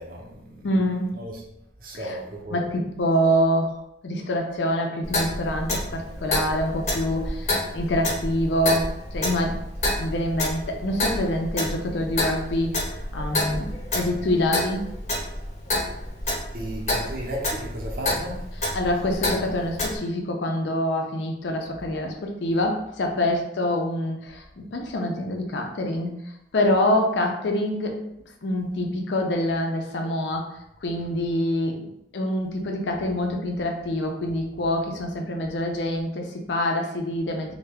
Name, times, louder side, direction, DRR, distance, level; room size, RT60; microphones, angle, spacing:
voice 1, 0.0-0.6 0.9-1.4 1.8-2.6 16.5-18.4 28.6-28.8, right 1 dB, 55° right, -1 dB, 0.7 m, -35 dB
voice 2, 0.6-1.2 1.9-2.2 2.5-9.6 10.0-13.7 13.9-14.8 18.5-26.2 26.5-28.0 28.4-30.5 30.8-31.9 32.1-37.5, left 1 dB, 85° left, 2 dB, 0.5 m, -26 dB
Clock, 5.0-20.0, left 1 dB, 40° left, 0.8 m, -29 dB
3.2 x 2.1 x 3.5 m, 0.80 s
head